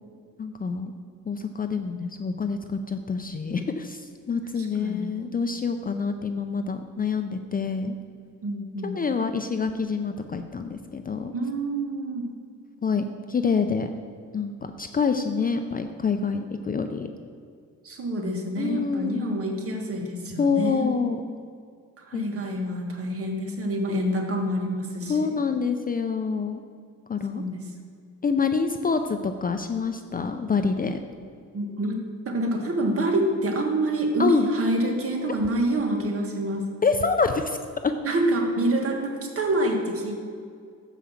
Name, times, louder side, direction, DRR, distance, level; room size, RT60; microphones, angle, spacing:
voice 1, 0.4-0.9 1.3-8.0 8.8-11.3 12.8-13.9 14.3-17.1 18.6-19.4 20.4-21.2 22.1-22.3 25.1-26.6 27.1-27.4 28.2-31.0 34.2-34.5 36.8-37.6 37.8-37.9, left 5 dB, 25° left, 7 dB, 0.5 m, -26 dB
voice 2, 4.6-5.2 8.4-9.0 11.3-12.2 17.8-20.9 22.0-25.3 27.3-27.6 31.5-36.7 38.0-40.3, right 1 dB, 45° right, 1 dB, 1.6 m, -27 dB
7.1 x 5.0 x 7.1 m, 2.2 s
cardioid pair, 90°, 32 cm